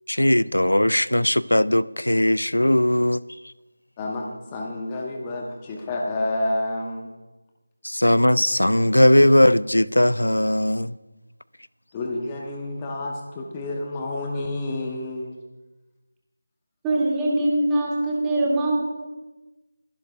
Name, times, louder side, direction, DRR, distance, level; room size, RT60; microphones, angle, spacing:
voice 1, 0.1-3.2 7.8-10.9, left 1 dB, 80° left, 0.4 m, -19 dB
voice 2, 4.0-7.1 11.9-15.4, left 2 dB, 15° left, 1.1 m, -29 dB
voice 3, 16.8-18.7, right 1 dB, 10° right, 1.9 m, -22 dB
22.0 x 11.5 x 2.5 m
figure-of-eight pair, 165°, 0 cm